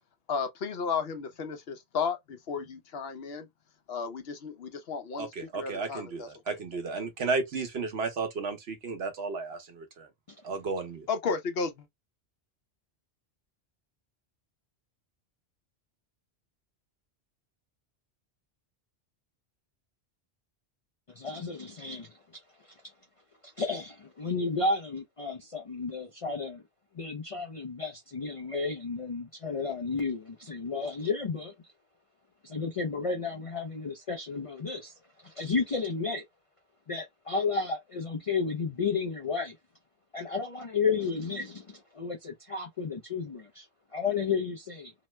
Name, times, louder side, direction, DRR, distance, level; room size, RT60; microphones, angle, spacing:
voice 1, 0.3-3.5 3.9-5.3 5.5-6.3 11.1-11.8, left 5 dB, 65° left, 0.9 m, -33 dB
voice 2, 5.2-10.1 10.4-11.1, right 4 dB, 70° right, 1.1 m, -33 dB
voice 3, 21.2-22.4 23.4-26.6 26.9-31.5 32.4-34.9 35.2-36.2 36.9-39.6 40.1-43.7 43.9-44.9, left 4 dB, 45° left, 0.4 m, -32 dB
2.9 x 2.1 x 3.1 m
omnidirectional pair, 1.1 m